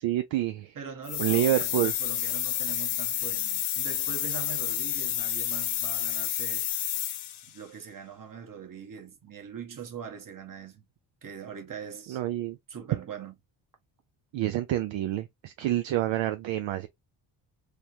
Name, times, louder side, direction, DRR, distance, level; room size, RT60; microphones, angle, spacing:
voice 1, 0.0-0.8 1.2-1.9 12.1-12.6 14.3-16.9, right 13 dB, 65° right, 0.5 m, -28 dB
voice 2, 0.7-6.7 7.5-10.8 11.2-12.2 12.7-13.3, right 7 dB, 40° right, 1.1 m, -42 dB
sound 1, 1.0-7.5, left 12 dB, 85° left, 0.7 m, -30 dB
3.3 x 2.1 x 2.7 m
cardioid pair, 80°, 49 cm